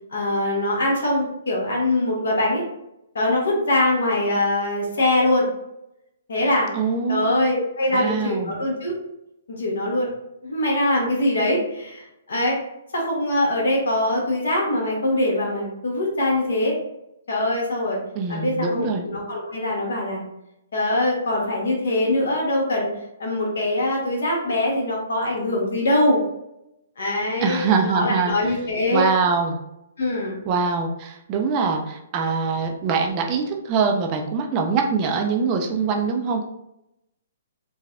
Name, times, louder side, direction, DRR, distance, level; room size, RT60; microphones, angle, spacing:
voice 1, 0.1-2.6 3.1-5.5 6.3-6.7 7.1-8.9 9.5-10.1 10.4-12.6 12.9-16.8 17.3-18.0 18.3-20.2 20.7-22.9 23.2-26.2 27.0-29.1 30.0-30.4, left 1 dB, 80° left, -2 dB, 1.2 m, -23 dB
voice 2, 6.7-7.5 7.9-8.6 18.2-19.1 27.4-28.3 28.9-29.6 30.5-36.4, right 5 dB, 30° right, 3 dB, 0.4 m, -23 dB
3.3 x 2.2 x 2.4 m, 0.85 s
hypercardioid pair, 150°, 0 cm